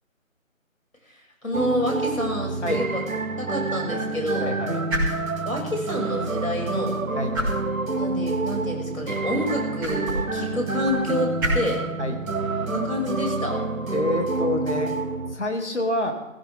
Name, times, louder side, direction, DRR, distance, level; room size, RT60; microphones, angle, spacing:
voice 1, 1.4-3.0 3.4-4.5 5.4-7.0 7.9-11.8 12.6-13.6, left 1 dB, 90° left, 0 dB, 6.8 m, -28 dB
sound 1, 1.5-15.4, right 3 dB, 80° right, 1.3 m, -28 dB
sound 2, 4.1-15.4, equal, 15° right, 3.5 m, -35 dB
voice 2, 4.4-4.8 7.2-7.4 12.0-12.2 13.9-14.9 15.3-16.1, left 1 dB, 55° left, 3 dB, 2.7 m, -27 dB
18.0 x 16.0 x 3.7 m, 1.0 s
figure-of-eight pair, 165°, 41 cm